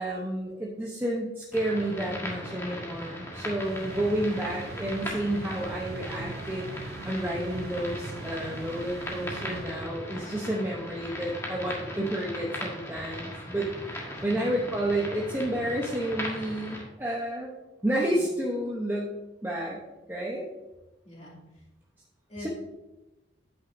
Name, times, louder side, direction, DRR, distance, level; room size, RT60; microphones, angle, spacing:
voice 1, 0.0-17.5 17.8-19.1 19.4-19.8 20.1-20.5 22.4-22.5, right 1 dB, 10° right, -3 dB, 0.8 m, -30 dB
sound 1, 1.5-16.8, equal, 15° left, 1.5 m, -38 dB
sound 2, 3.6-10.3, right 4 dB, 50° right, 0.4 m, -42 dB
voice 2, 14.1-14.5 18.1-18.3 21.0-21.6 22.3-22.5, equal, 35° left, -4 dB, 2.5 m, -44 dB
9.3 x 8.5 x 2.6 m, 1.1 s
head